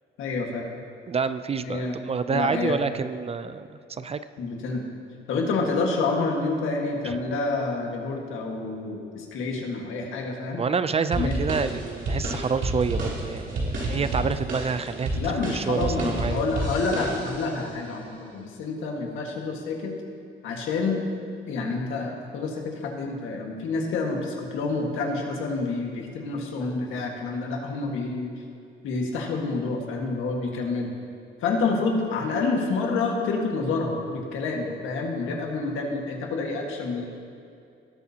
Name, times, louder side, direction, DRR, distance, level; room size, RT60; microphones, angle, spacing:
voice 1, 0.2-0.7 1.6-2.0 2.3-2.8 4.4-4.8 5.3-10.6 11.1-11.4 15.1-19.9 20.4-21.0 21.5-28.3 28.8-30.9 31.4-37.0, left 3 dB, 85° left, 0 dB, 1.7 m, -28 dB
voice 2, 1.1-4.2 10.5-15.1 15.5-16.4, right 5 dB, 30° right, 12 dB, 0.4 m, -28 dB
sound 1, 11.1-17.5, right 1 dB, 75° right, 2.9 m, -30 dB
18.0 x 8.2 x 2.9 m, 2.5 s
cardioid pair, 90°, 20 cm